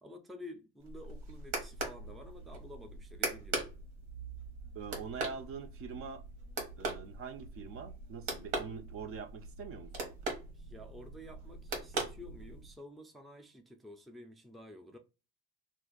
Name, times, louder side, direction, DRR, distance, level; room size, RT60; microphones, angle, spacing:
voice 1, 0.0-3.7 10.5-15.0, left 1 dB, ahead, 0.4 m, -51 dB
sound 1, 0.8-12.8, right 3 dB, 90° right, 1.2 m, -41 dB
voice 2, 4.7-6.2 6.8-10.2, right 5 dB, 50° right, 0.6 m, -44 dB
2.6 x 2.4 x 3.8 m
cardioid pair, 105°, 29 cm